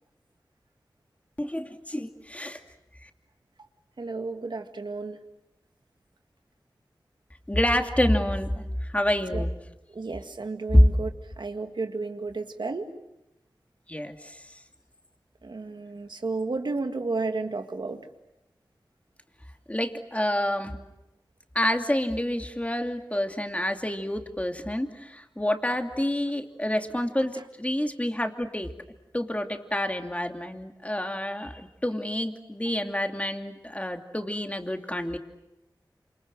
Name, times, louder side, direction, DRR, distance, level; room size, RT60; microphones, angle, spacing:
voice 1, 1.4-2.6 3.0-3.1 7.5-9.5 10.7-10.9 13.9-14.5 19.7-20.8 21.5-28.7 29.1-35.2, left 1 dB, 15° left, 5 dB, 2.7 m, -27 dB
voice 2, 4.0-5.2 9.3-9.4 9.9-11.1 11.4-12.9 15.4-18.1, right 3 dB, 70° right, 6 dB, 2.2 m, -32 dB
28.0 x 26.5 x 7.8 m, 0.91 s
cardioid pair, 45°, 8 cm